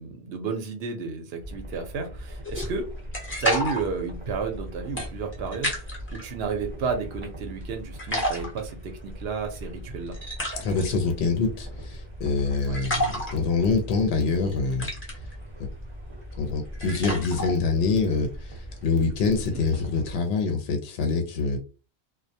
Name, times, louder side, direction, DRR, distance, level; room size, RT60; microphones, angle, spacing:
voice 1, 0.0-2.9 3.4-5.7 6.1-10.1 12.7-12.8 19.4-19.7, right 5 dB, 70° right, 5 dB, 0.8 m, -32 dB
sound 1, 1.4-20.2, equal, 35° right, 0.7 m, -40 dB
sound 2, 2.4-6.2 6.7-7.7 8.0-19.8, equal, 15° left, 0.6 m, -33 dB
voice 2, 10.6-14.9 16.4-21.6, left 4 dB, 75° left, 3 dB, 0.8 m, -25 dB
2.2 x 2.1 x 2.6 m, 0.33 s
omnidirectional pair, 1.1 m